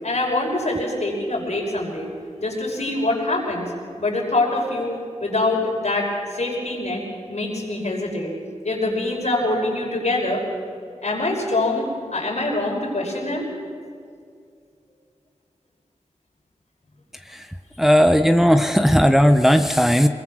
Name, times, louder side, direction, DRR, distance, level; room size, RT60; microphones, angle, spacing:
voice 1, 0.0-2.1 2.4-3.7 4.0-8.3 8.6-10.4 11.0-13.5, left 2 dB, 65° left, -1 dB, 5.4 m, -24 dB
voice 2, 17.8-20.1, equal, ahead, 7 dB, 1.0 m, -16 dB
22.5 x 21.5 x 6.4 m, 2.3 s
cardioid pair, 45°, 12 cm